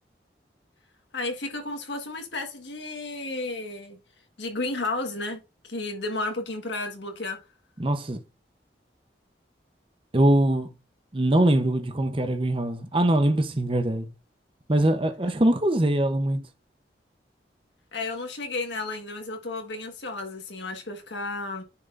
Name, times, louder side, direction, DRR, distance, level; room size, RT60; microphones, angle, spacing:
voice 1, 1.1-4.0 4.4-7.4 17.9-21.6, left 2 dB, 80° left, 1.5 m, -32 dB
voice 2, 7.8-8.2 10.1-10.7 11.1-14.1 14.7-16.4, right 1 dB, 30° right, 0.7 m, -22 dB
9.7 x 4.3 x 2.5 m
head